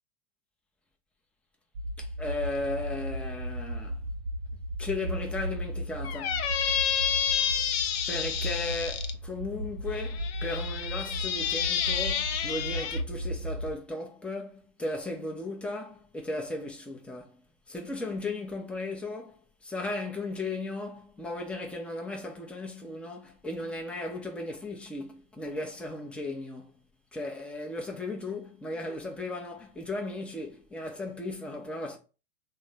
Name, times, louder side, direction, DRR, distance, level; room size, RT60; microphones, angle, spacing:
sound 1, 1.8-13.7, equal, 65° right, 0.7 m, -35 dB
voice 1, 2.0-4.0 4.8-6.4 7.6-7.7 8.1-17.4 17.7-26.7 27.1-32.0, left 2 dB, 5° left, 0.7 m, -36 dB
Squeak, 6.0-9.1 9.9-13.0, left 8 dB, 60° left, 0.7 m, -30 dB
3.5 x 2.2 x 3.4 m
hypercardioid pair, 95°, 35 cm